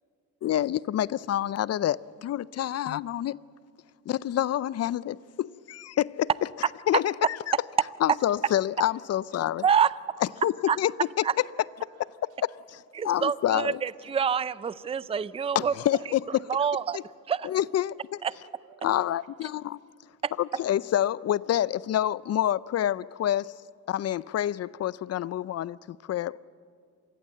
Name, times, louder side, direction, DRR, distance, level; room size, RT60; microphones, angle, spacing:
voice 1, 0.4-3.4 4.1-6.3 6.9-7.5 8.0-9.6 10.2-10.9 12.2-13.8 15.5-16.2 16.9-17.0 17.4-18.0 18.8-19.8 20.4-23.6 23.9-26.4, left 12 dB, 55° left, 0.5 m, -27 dB
voice 2, 8.4-9.7 10.3-10.4 11.0-11.1 11.4-12.2 16.0-16.4 18.3-19.3, right 8 dB, 90° right, 2.0 m, -56 dB
voice 3, 12.9-15.7 16.5-17.0 17.3-17.5 18.2-18.3 20.2-20.3, right 7 dB, 20° right, 0.5 m, -26 dB
26.5 x 20.0 x 7.7 m
cardioid pair, 90°, 30 cm